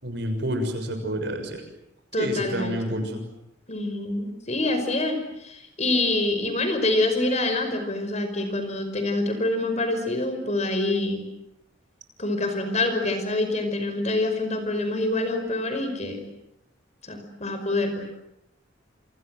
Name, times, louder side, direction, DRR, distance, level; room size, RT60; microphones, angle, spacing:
voice 1, 0.0-1.6 2.2-3.2, equal, 60° right, 6 dB, 6.5 m, -29 dB
voice 2, 2.1-2.9 3.7-11.2 12.2-16.2 17.0-18.1, left 2 dB, 35° left, 7 dB, 5.3 m, -26 dB
28.0 x 27.0 x 7.7 m, 0.81 s
head